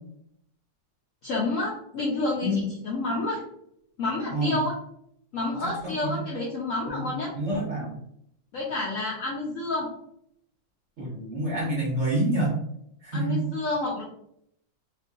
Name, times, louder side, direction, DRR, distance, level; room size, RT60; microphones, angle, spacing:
voice 1, 1.2-3.4 4.0-4.7 5.3-7.3 8.5-9.9 13.1-14.0, left 2 dB, 65° left, -4 dB, 0.8 m, -29 dB
voice 2, 7.3-8.0 11.0-12.5 13.0-13.4, right 1 dB, 50° right, -5 dB, 0.9 m, -27 dB
3.7 x 2.5 x 2.5 m, 0.72 s
omnidirectional pair, 2.0 m